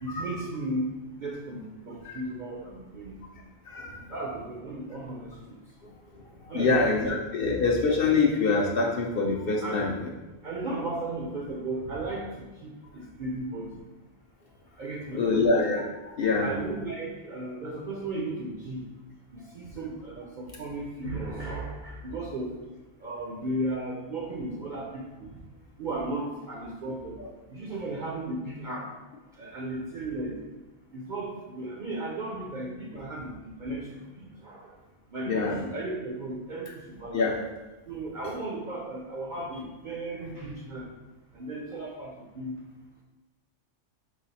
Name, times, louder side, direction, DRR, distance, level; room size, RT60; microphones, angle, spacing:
voice 1, 0.0-3.2 4.1-5.6 6.5-6.8 9.6-9.9 10.4-13.8 14.8-15.5 16.4-18.8 19.3-22.5 23.0-25.3 25.8-27.2 27.5-28.9 29.4-30.4 30.9-34.8 35.1-37.2 37.9-40.9 41.3-42.5, right 2 dB, 60° right, -2 dB, 0.5 m, -35 dB
voice 2, 6.5-10.0 15.2-15.8 16.2-16.5 35.3-35.6 37.1-37.4, left 3 dB, 60° left, 0 dB, 0.6 m, -25 dB
4.9 x 2.3 x 4.0 m, 1.1 s
omnidirectional pair, 1.3 m